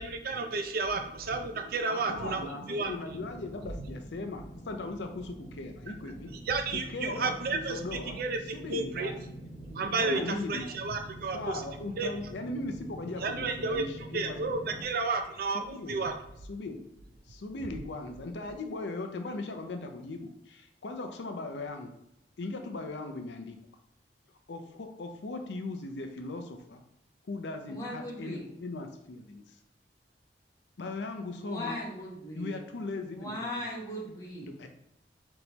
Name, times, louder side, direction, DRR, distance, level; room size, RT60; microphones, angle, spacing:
voice 1, 0.0-2.9 3.8-3.9 6.5-7.8 8.1-9.1 9.7-10.2 10.5-11.6 12.0-12.1 13.2-13.8 14.1-16.1, right 3 dB, 55° right, 6 dB, 0.5 m, -32 dB
voice 2, 1.9-6.3 6.7-8.2 8.5-9.2 9.9-10.8 11.3-14.8 15.5-16.1 16.5-16.9 17.3-21.9 22.4-23.6 24.5-26.8 27.2-29.6 30.8-31.8 32.4-33.7 34.4-34.7, left 2 dB, 80° left, 5 dB, 0.5 m, -38 dB
sound 1, 3.0-14.8, right 1 dB, ahead, 1.3 m, -46 dB
voice 3, 27.7-28.4 31.4-32.6 33.0-34.6, left 1 dB, 20° left, -5 dB, 1.2 m, -38 dB
4.0 x 3.7 x 2.9 m, 0.82 s
head